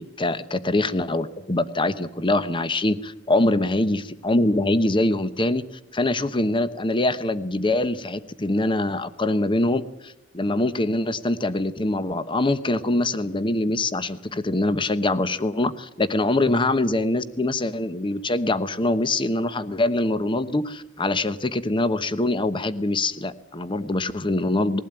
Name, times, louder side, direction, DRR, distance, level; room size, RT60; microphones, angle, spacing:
voice 1, 0.0-5.7 5.9-24.8, left 2 dB, 25° left, 13 dB, 1.0 m, -24 dB
20.5 x 16.0 x 9.0 m, 0.88 s
head